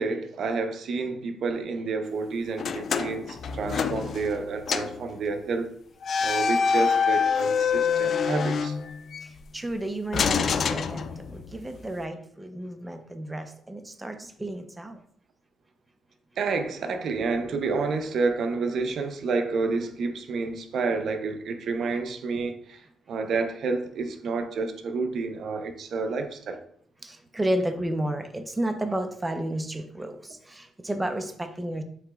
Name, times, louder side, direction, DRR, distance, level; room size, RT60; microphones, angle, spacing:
voice 1, 0.0-5.7 6.2-8.8 16.4-26.6, right 4 dB, 65° right, 0.5 m, -29 dB
sound 1, 2.6-4.4 4.7-5.0 6.0-9.2 10.1-11.5, left 6 dB, 55° left, 0.3 m, -26 dB
voice 2, 9.2-15.0 27.0-31.8, right 1 dB, 15° right, 0.5 m, -32 dB
7.7 x 2.9 x 2.3 m
cardioid pair, 90°, 0 cm